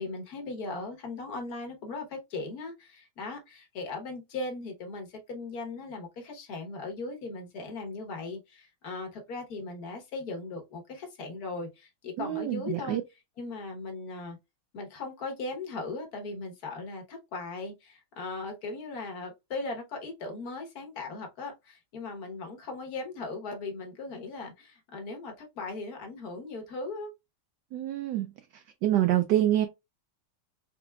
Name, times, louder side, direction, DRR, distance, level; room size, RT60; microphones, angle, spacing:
voice 1, 0.0-13.0 13.4-14.4 14.7-27.1, left 3 dB, 50° left, 1.5 m, -38 dB
voice 2, 12.2-13.0 27.7-28.3 28.8-29.7, right 13 dB, 75° right, 1.0 m, -26 dB
4.6 x 3.9 x 2.3 m
omnidirectional pair, 2.3 m